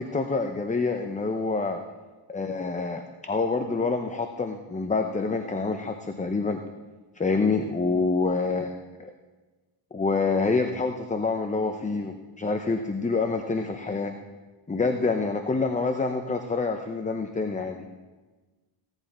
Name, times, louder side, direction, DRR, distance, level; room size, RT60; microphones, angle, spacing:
voice 1, 0.0-1.8 2.3-6.6 7.2-8.7 9.9-14.1 14.7-17.9, left 3 dB, 15° left, 6 dB, 0.7 m, -27 dB
16.5 x 11.0 x 4.3 m, 1.3 s
cardioid pair, 100°, 49 cm